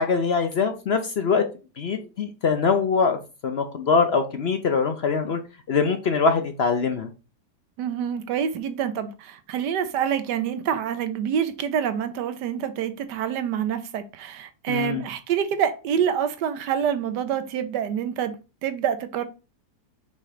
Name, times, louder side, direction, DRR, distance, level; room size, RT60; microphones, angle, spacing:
voice 1, 0.0-1.4 1.8-5.4 5.7-7.1 14.7-15.0, left 5 dB, 55° left, 0.7 m, -23 dB
voice 2, 7.8-18.4 18.6-19.3, right 8 dB, 85° right, 1.4 m, -26 dB
5.5 x 3.8 x 4.9 m
omnidirectional pair, 1.8 m